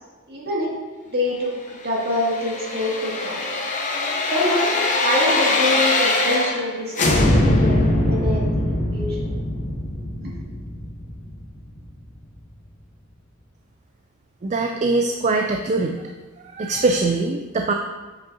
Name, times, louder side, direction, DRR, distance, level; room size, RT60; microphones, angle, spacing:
voice 1, 0.3-0.8 1.1-3.5 4.3-4.7 5.0-9.2 10.2-10.4, left 1 dB, 50° right, -5 dB, 2.1 m, -26 dB
sound 1, 1.9-6.7 7.0-11.8 12.2-12.3, left 1 dB, 35° left, 0.8 m, -22 dB
voice 2, 14.4-16.0 16.4-17.7, right 3 dB, 35° right, 3 dB, 0.4 m, -22 dB
7.6 x 6.2 x 2.8 m, 1.3 s
head